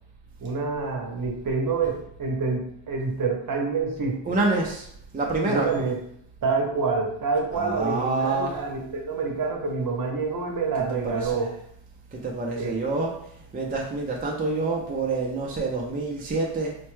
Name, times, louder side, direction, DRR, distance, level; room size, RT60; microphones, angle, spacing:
voice 1, 0.4-4.4 5.4-6.0 6.4-11.5 12.5-12.8, right 4 dB, 45° right, 1 dB, 0.7 m, -27 dB
voice 2, 4.2-4.9 5.1-5.7 7.5-8.6 10.8-11.5 12.1-13.2 13.5-16.8, right 3 dB, 20° right, -1 dB, 0.4 m, -27 dB
4.3 x 2.2 x 3.1 m, 0.70 s
wide cardioid pair, 145°, 46 cm